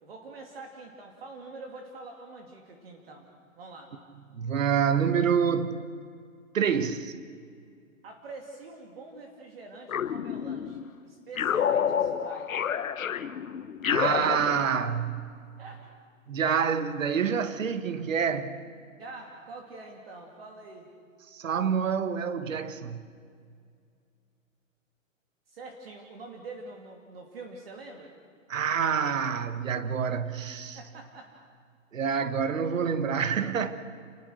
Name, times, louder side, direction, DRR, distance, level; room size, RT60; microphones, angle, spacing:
voice 1, 0.0-3.3 3.6-3.9 8.0-12.7 15.6-15.9 19.0-20.9 25.5-28.1 30.7-31.3, right 3 dB, 45° right, 2.9 m, -45 dB
voice 2, 4.3-5.8 6.5-7.1 13.9-15.4 16.3-18.6 21.3-23.0 28.5-30.8 31.9-33.8, right 7 dB, 70° right, 1.7 m, -27 dB
sound 1, 9.9-10.9 11.4-15.0, left 8 dB, 85° left, 1.4 m, -29 dB
30.0 x 20.5 x 6.5 m
hypercardioid pair, 180°, 40 cm